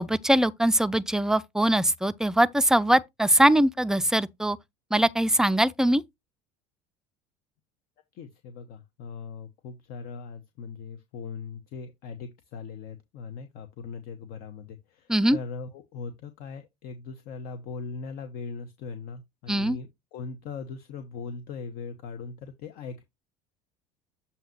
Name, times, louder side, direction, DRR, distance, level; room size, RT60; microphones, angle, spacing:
voice 1, 0.0-4.6 4.9-6.0 15.1-15.4 19.5-19.8, right 1 dB, 5° right, 0.5 m, -22 dB
voice 2, 8.1-23.0, left 5 dB, 55° left, 1.0 m, -40 dB
7.3 x 2.8 x 5.8 m
hypercardioid pair, 70°, 18 cm